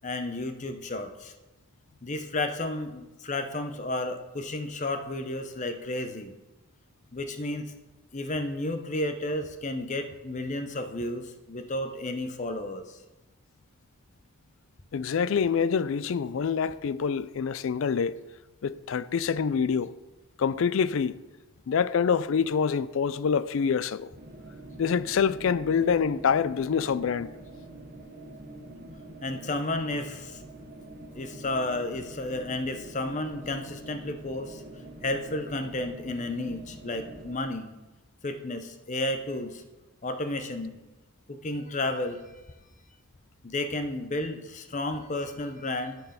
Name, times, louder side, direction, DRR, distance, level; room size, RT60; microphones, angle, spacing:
voice 1, 0.0-1.3 2.0-6.3 7.1-7.7 8.1-13.0 29.2-30.4 31.2-34.6 35.0-37.7 38.2-39.6 40.0-40.8 41.3-42.2 43.4-46.0, left 2 dB, 35° left, 0.7 m, -32 dB
voice 2, 14.9-18.2 18.6-19.9 20.4-21.2 21.7-24.1 24.8-27.3, left 6 dB, 60° left, 0.3 m, -26 dB
Empty Office Room Tone, 24.1-37.4, right 1 dB, 40° right, 1.0 m, -45 dB
12.5 x 4.6 x 5.7 m
head